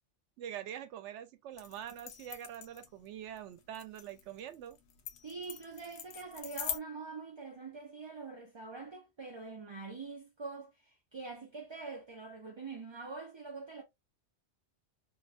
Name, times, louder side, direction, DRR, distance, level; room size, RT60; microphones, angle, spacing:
voice 1, 0.4-4.8, right 10 dB, 90° right, 0.9 m, -44 dB
sound 1, 1.6-6.8, left 8 dB, 85° left, 0.9 m, -43 dB
voice 2, 5.2-13.8, right 4 dB, 40° right, 0.4 m, -44 dB
2.6 x 2.2 x 2.4 m
omnidirectional pair, 1.2 m